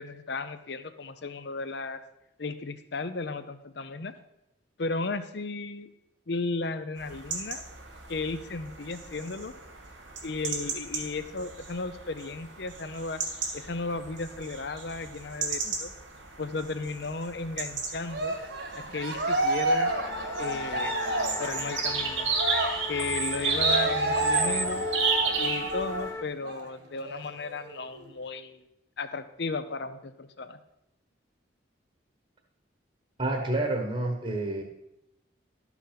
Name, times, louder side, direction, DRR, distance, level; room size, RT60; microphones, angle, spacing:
voice 1, 0.0-2.0 2.4-4.1 4.8-5.9 6.3-7.6 8.1-9.5 10.2-13.2 13.5-15.9 16.4-18.4 18.7-19.9 20.4-20.9 21.4-22.3 22.9-24.9 25.4-28.6 29.0-30.6, left 3 dB, 60° left, 12 dB, 0.7 m, -34 dB
sound 1, 7.0-26.1, right 5 dB, 80° right, 2.5 m, -34 dB
Cheering, 18.1-26.1 26.4-26.6 27.0-28.0, right 2 dB, 65° right, 1.7 m, -30 dB
sound 2, 19.8-26.2, left 4 dB, 15° left, 0.3 m, -38 dB
voice 2, 33.2-34.6, right 2 dB, 30° right, 2 dB, 1.2 m, -29 dB
12.5 x 6.0 x 5.8 m, 0.87 s
head